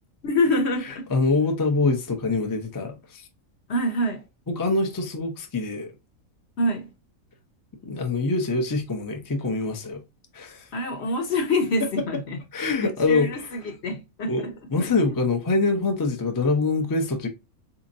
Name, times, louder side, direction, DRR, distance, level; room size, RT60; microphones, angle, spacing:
voice 1, 0.2-1.1 3.7-4.3 6.6-6.9 10.7-12.4 12.8-15.0, left 1 dB, 55° left, 1.0 m, -26 dB
voice 2, 1.1-3.3 4.6-5.9 7.8-10.0 10.3-10.7 11.8-12.0 12.5-13.3 14.3-17.3, left 3 dB, 25° left, 0.4 m, -24 dB
4.1 x 2.8 x 2.6 m
omnidirectional pair, 1.5 m